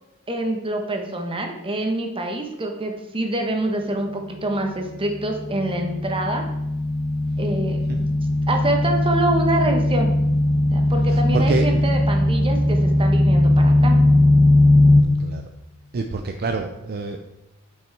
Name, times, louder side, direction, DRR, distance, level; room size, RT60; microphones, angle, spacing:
voice 1, 0.3-6.4 7.4-8.1 8.5-10.1 10.7-14.0, right 1 dB, 25° right, 3 dB, 1.1 m, -26 dB
sound 1, 5.4-15.0, left 1 dB, 20° left, 0.9 m, -18 dB
voice 2, 11.1-11.8 15.2-15.5 15.9-17.2, right 3 dB, 45° right, 5 dB, 0.5 m, -27 dB
7.4 x 5.4 x 4.7 m, 0.94 s
head